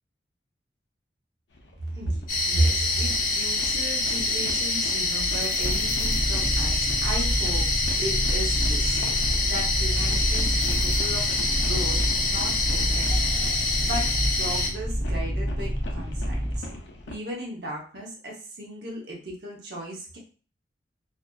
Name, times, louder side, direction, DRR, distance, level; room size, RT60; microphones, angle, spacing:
sound 1, 1.5-17.2, left 2 dB, 85° left, 0.5 m, -41 dB
voice 1, 1.9-7.7 8.0-9.0 9.4-13.4 13.8-16.7 17.1-20.2, right 1 dB, 65° right, -2 dB, 0.8 m, -34 dB
sound 2, 2.3-14.7, left 3 dB, 50° left, 0.7 m, -26 dB
sound 3, 5.6-16.6, equal, 5° left, 0.8 m, -28 dB
2.6 x 2.4 x 2.2 m, 0.39 s
head